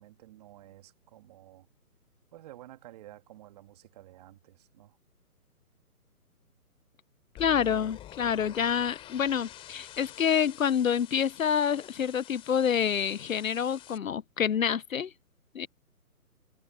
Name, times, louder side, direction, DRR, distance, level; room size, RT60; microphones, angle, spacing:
voice 1, 0.0-1.7 2.3-5.0, right 14 dB, 25° right, 2.2 m, -52 dB
voice 2, 7.4-15.1 15.5-15.7, left 8 dB, 60° left, 0.8 m, -27 dB
sound 1, 7.4-14.0, left 13 dB, 10° left, 3.3 m, -48 dB
hypercardioid pair, 160°, 46 cm